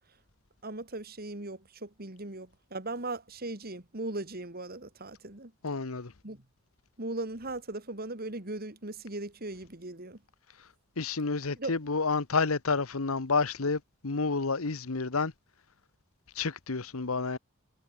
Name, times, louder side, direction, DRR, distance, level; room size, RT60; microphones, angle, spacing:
voice 1, 0.6-5.5 6.2-6.4 7.0-10.2 11.6-11.7, right 2 dB, 45° right, 2.7 m, -38 dB
voice 2, 5.6-6.1 10.6-10.7 11.0-15.3 16.3-17.4, left 4 dB, 85° left, 1.2 m, -30 dB
head